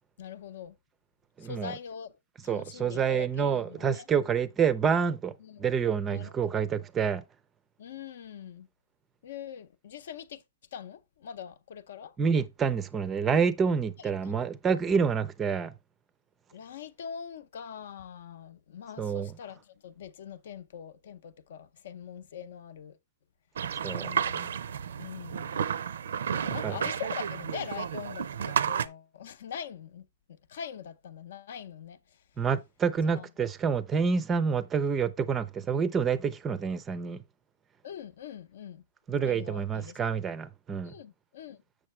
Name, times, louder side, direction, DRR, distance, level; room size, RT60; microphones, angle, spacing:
voice 1, 0.2-0.8 1.4-4.1 5.4-5.7 6.1-6.7 7.8-8.7 9.2-10.4 10.7-12.2 14.0-14.3 16.5-23.0 23.9-24.6 25.0-25.7 26.2-32.2 33.0-33.3 37.8-38.8 39.2-40.2 40.8-41.6, left 8 dB, 65° left, 0.6 m, -43 dB
voice 2, 1.4-1.7 2.5-5.3 5.6-7.2 12.2-15.7 19.0-19.3 23.8-24.1 26.6-26.8 32.4-37.2 39.1-40.9, right 6 dB, 15° right, 0.5 m, -28 dB
sound 1, 23.6-28.9, right 8 dB, 85° right, 0.6 m, -32 dB
7.6 x 6.4 x 3.2 m
hypercardioid pair, 165°, 0 cm